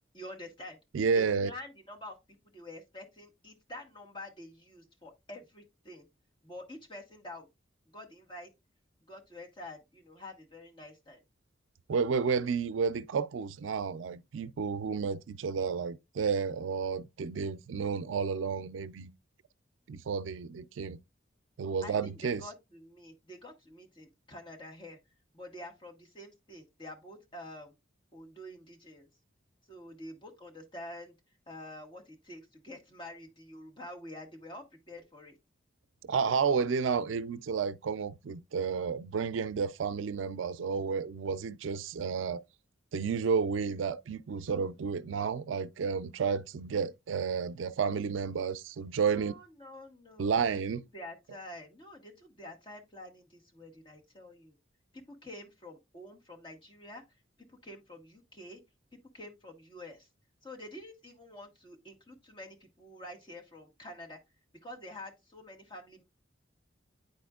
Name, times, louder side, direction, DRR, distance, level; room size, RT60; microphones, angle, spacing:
voice 1, 0.1-0.8 1.1-2.2 2.4-6.1 6.4-7.5 7.9-8.5 9.1-11.2 21.8-25.0 25.3-27.7 28.1-29.0 29.7-31.1 31.5-35.3 49.1-54.5 54.9-57.0 57.5-58.6 59.1-60.1 60.4-64.2 64.6-66.0, left 1 dB, 25° left, 1.3 m, -47 dB
voice 2, 0.9-1.5 11.9-19.1 19.9-21.0 21.6-22.4 36.1-42.4 42.9-49.3 50.2-50.8, right 5 dB, 90° right, 0.4 m, -31 dB
9.6 x 4.2 x 2.3 m
head